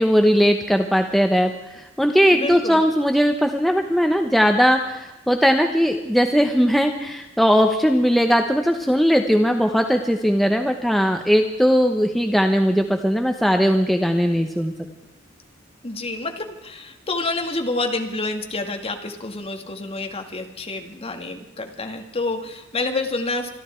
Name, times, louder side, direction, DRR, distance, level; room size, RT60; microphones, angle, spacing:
voice 1, 0.0-14.7, equal, ahead, 4 dB, 0.8 m, -19 dB
voice 2, 2.3-2.8 15.8-23.5, left 2 dB, 30° left, 4 dB, 1.8 m, -28 dB
25.5 x 12.5 x 4.5 m, 1.0 s
head